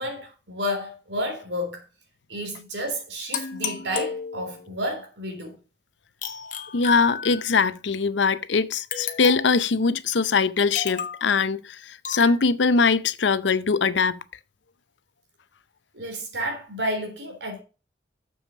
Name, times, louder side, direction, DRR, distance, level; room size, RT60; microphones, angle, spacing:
voice 1, 0.0-1.8 2.3-5.6 15.9-17.6, equal, 85° right, 3.4 m, -31 dB
sound 1, 3.3-4.7 6.2-7.6 8.9-9.7 10.7-11.3 12.0-12.4, left 6 dB, 45° left, 1.1 m, -33 dB
voice 2, 6.7-14.2, left 4 dB, 85° left, 0.6 m, -22 dB
7.1 x 6.5 x 6.2 m
head